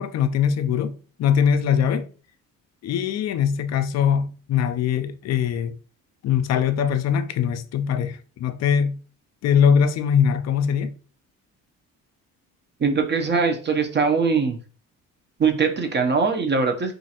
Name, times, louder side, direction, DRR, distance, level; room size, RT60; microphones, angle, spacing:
voice 1, 0.0-2.1 2.8-5.7 6.2-9.0 9.4-10.9, left 7 dB, 50° left, 0.4 m, -22 dB
voice 2, 12.8-14.6 15.4-16.9, right 5 dB, 30° right, 0.6 m, -21 dB
3.0 x 2.5 x 2.8 m
cardioid pair, 95°, 34 cm